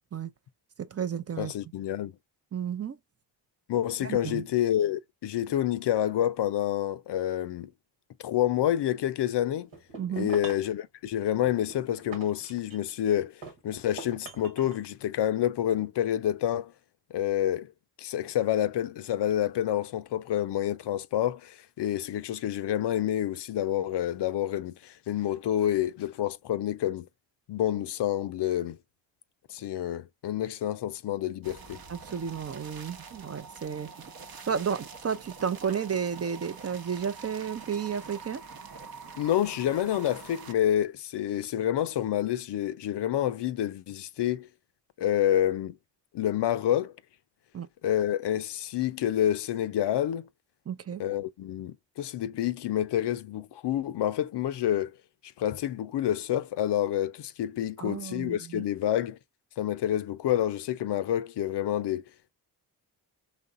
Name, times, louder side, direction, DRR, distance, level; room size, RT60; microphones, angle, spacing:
voice 1, 0.8-1.5 2.5-3.0 4.0-4.4 10.0-10.3 31.9-33.9 34.5-38.4 47.5-47.7 50.7-51.0 57.8-58.6, right 7 dB, 35° right, 0.5 m, -32 dB
voice 2, 1.4-2.1 3.7-7.7 8.2-9.7 10.1-13.3 13.6-16.7 17.1-17.7 18.0-27.1 27.5-28.8 29.5-31.8 39.2-44.5 45.0-45.8 46.1-46.9 47.8-50.3 51.0-54.9 55.4-59.2 59.6-62.0, left 11 dB, 65° left, 0.5 m, -28 dB
sound 1, 9.7-10.7 11.4-13.0 13.4-14.8, right 3 dB, 80° right, 1.4 m, -43 dB
sound 2, 31.4-40.5, right 5 dB, 50° right, 0.9 m, -45 dB
4.1 x 3.1 x 2.4 m
supercardioid pair, 45°, 45 cm